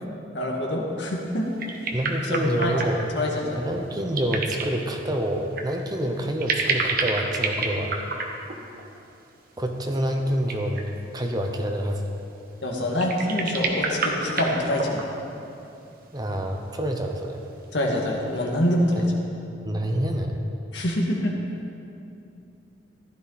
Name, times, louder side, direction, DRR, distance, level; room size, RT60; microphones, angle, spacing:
voice 1, 0.3-1.5 1.8-1.9 2.2-2.7 3.1-3.6 12.6-15.1 17.7-19.0 20.7-21.3, left 1 dB, 75° left, -1 dB, 2.0 m, -25 dB
sound 1, 1.3-1.4 1.6-3.2 4.1-4.8 5.5-5.7 6.4-8.8 10.0-10.1 10.3-11.1 13.0-15.3 16.3-16.4 17.5-17.7, right 4 dB, 50° right, 1.2 m, -28 dB
voice 2, 1.9-3.1 3.6-8.0 9.6-10.9 11.1-12.1 16.1-17.4 18.9-19.1 19.6-20.3, right 1 dB, 20° right, 3 dB, 0.9 m, -27 dB
15.0 x 12.0 x 4.2 m, 2.7 s
head